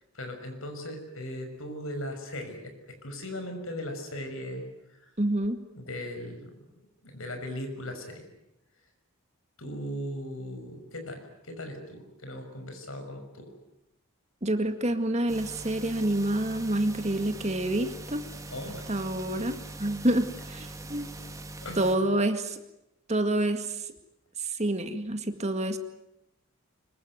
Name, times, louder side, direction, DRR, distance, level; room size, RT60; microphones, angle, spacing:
voice 1, 0.1-4.7 5.0-5.1 5.8-8.3 9.6-13.5 18.5-18.9 21.6-22.0, left 1 dB, 75° left, 5 dB, 6.3 m, -38 dB
voice 2, 5.2-5.6 14.4-18.2 18.9-21.1 21.8-22.6 23.1-23.9 24.4-25.8, right 1 dB, 30° right, 8 dB, 2.0 m, -28 dB
sound 1, 15.3-22.0, right 2 dB, 15° right, 2.4 m, -42 dB
25.0 x 23.0 x 9.4 m, 0.86 s
head